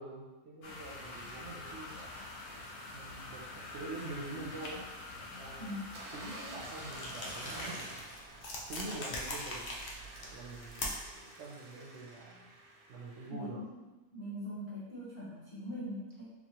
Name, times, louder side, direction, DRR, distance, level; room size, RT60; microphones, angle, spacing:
voice 1, 0.0-2.2 2.9-4.8 5.2-5.8 6.1-7.7 8.7-9.7 10.3-12.5 12.9-13.6, right 2 dB, 65° right, -3 dB, 0.7 m, -45 dB
sound 1, 0.6-7.6, left 2 dB, 70° left, 1.0 m, -46 dB
voice 2, 5.6-5.9 13.3-13.8 14.1-16.2, left 1 dB, 30° left, -10 dB, 0.5 m, -41 dB
sound 2, 5.9-13.3, right 2 dB, 85° right, 1.1 m, -49 dB
sound 3, 6.9-11.2, left 1 dB, 90° left, 0.4 m, -41 dB
2.9 x 2.3 x 2.8 m, 1.1 s
omnidirectional pair, 1.5 m